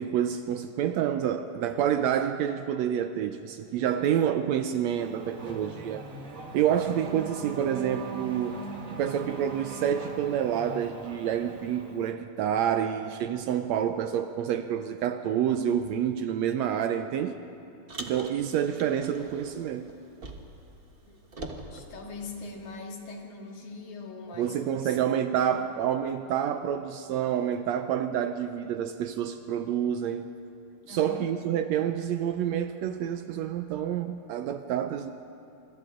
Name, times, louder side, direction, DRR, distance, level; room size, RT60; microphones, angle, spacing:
voice 1, 0.0-6.0 6.5-8.6 9.0-17.4 18.0-19.9 24.4-30.3 30.9-35.1, right 9 dB, 75° right, 8 dB, 1.6 m, -28 dB
Race car auto racing / Accelerating revving vroom, 4.9-12.1, right 3 dB, 30° right, 1.7 m, -41 dB
Car, 17.9-20.7 21.0-22.8, right 2 dB, 60° right, 0.5 m, -43 dB
voice 2, 21.5-25.0 25.6-25.7 30.8-31.3, left 3 dB, 70° left, 0 dB, 3.7 m, -42 dB
26.5 x 26.0 x 3.8 m, 2.8 s
omnidirectional pair, 3.6 m